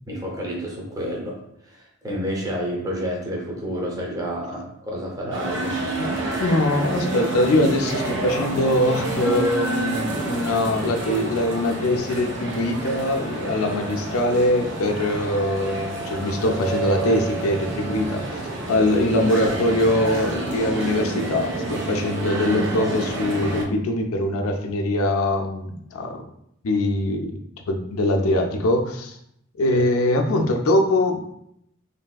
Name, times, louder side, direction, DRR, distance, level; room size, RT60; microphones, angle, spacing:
voice 1, 0.1-1.4 1.6-5.8 29.7-29.8, equal, 15° right, -3 dB, 0.6 m, -29 dB
sound 1, 5.3-23.6, right 2 dB, 60° right, 0.6 m, -29 dB
voice 2, 6.4-18.4 18.7-26.2 26.6-27.3 27.7-29.2 29.6-31.3, left 1 dB, 90° left, 4 dB, 0.4 m, -22 dB
3.4 x 2.6 x 2.3 m, 0.74 s
head